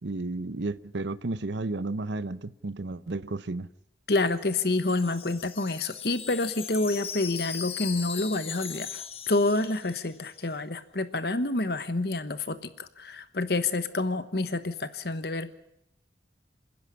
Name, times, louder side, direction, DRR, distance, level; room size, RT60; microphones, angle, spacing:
voice 1, 0.0-3.7, right 2 dB, 75° right, 0.7 m, -32 dB
voice 2, 4.1-15.5, left 2 dB, 60° left, 1.1 m, -28 dB
Wind chime, 4.3-10.3, left 8 dB, 30° left, 1.2 m, -39 dB
27.5 x 10.5 x 9.9 m
head